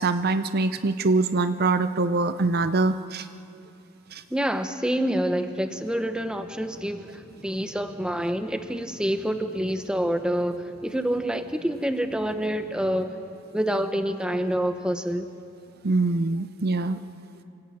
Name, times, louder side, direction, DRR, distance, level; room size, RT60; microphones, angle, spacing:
voice 1, 0.0-3.3 4.1-4.2 15.8-17.0, right 3 dB, 50° right, 11 dB, 0.6 m, -24 dB
voice 2, 4.3-13.2 13.5-15.3, equal, 5° right, 7 dB, 1.0 m, -27 dB
26.0 x 17.5 x 8.6 m, 2.7 s
head